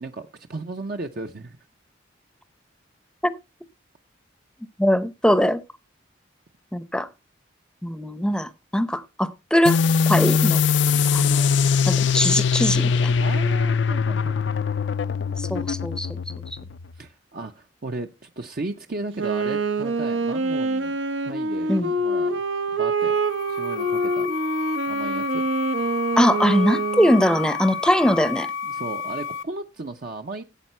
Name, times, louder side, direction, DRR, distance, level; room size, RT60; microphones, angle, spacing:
voice 1, 0.0-1.6 10.8-11.1 13.2-14.6 16.9-21.0 21.2-22.4 22.7-23.2 23.5-24.3 24.9-25.4 27.7-27.8 28.6-30.4, right 2 dB, 50° right, 0.7 m, -35 dB
voice 2, 4.8-5.6 6.7-7.1 7.8-9.8 10.1-10.6 11.1-13.1 15.4-16.2 21.7-21.9 26.2-28.5, equal, 5° left, 0.7 m, -21 dB
sound 1, 9.7-16.9, left 6 dB, 65° left, 0.5 m, -22 dB
Wind instrument woodwind instrument, 19.1-27.5, right 2 dB, 80° right, 0.9 m, -25 dB
sound 2, 22.9-29.4, left 6 dB, 90° left, 0.9 m, -31 dB
12.5 x 8.2 x 4.3 m
head